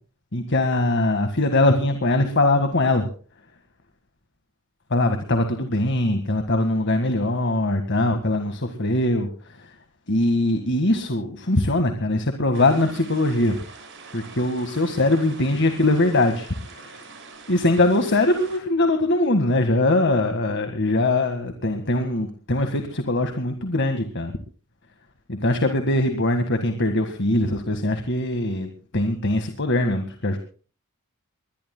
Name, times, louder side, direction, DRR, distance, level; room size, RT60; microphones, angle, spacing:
voice 1, 0.3-3.1 4.9-9.7 10.1-13.6 14.1-17.0 17.5-24.3 25.3-30.4, left 2 dB, 55° left, 7 dB, 1.7 m, -22 dB
sound 1, 12.5-18.6, right 4 dB, 55° right, 6.6 m, -44 dB
22.0 x 21.0 x 2.2 m, 0.40 s
head